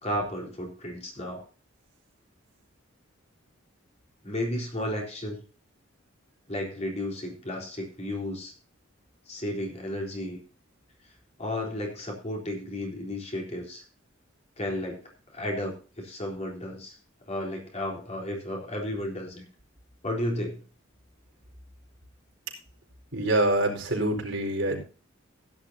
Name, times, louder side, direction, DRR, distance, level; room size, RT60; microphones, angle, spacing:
voice 1, 0.0-1.5 4.2-5.4 6.5-8.5 9.3-10.4 11.4-13.8 14.6-15.0 15.3-17.0 17.3-19.5 20.0-20.6, left 1 dB, 35° left, 0 dB, 3.7 m, -33 dB
voice 2, 23.1-24.8, right 1 dB, 65° right, 1 dB, 4.7 m, -25 dB
16.0 x 11.0 x 2.7 m, 0.36 s
head